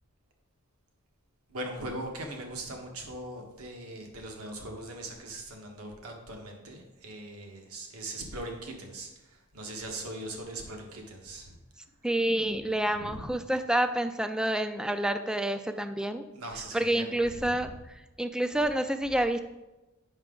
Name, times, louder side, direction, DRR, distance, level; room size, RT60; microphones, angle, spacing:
voice 1, 1.5-11.6 12.9-13.3 16.3-17.7, right 1 dB, 80° right, 2 dB, 1.3 m, -40 dB
voice 2, 12.0-16.2 16.7-17.7 18.2-19.4, right 1 dB, 5° right, 9 dB, 0.3 m, -28 dB
8.8 x 6.0 x 3.7 m, 1.0 s
head